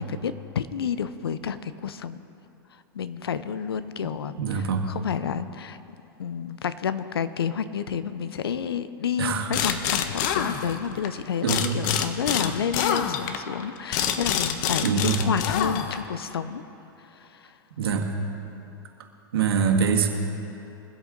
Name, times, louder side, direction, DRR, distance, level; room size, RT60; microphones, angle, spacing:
voice 1, 0.0-2.2 2.9-5.8 6.2-16.6 17.1-17.5, left 7 dB, 90° left, 13 dB, 0.8 m, -30 dB
voice 2, 4.4-4.8 9.2-9.5 11.4-11.9 14.8-15.2 17.8-18.1 19.3-20.1, right 6 dB, 80° right, 2 dB, 2.0 m, -24 dB
sound 1, 9.5-11.1 11.5-16.2, left 8 dB, 55° left, 1.1 m, -27 dB
23.5 x 8.3 x 3.9 m, 2.9 s
hypercardioid pair, 120°, 12 cm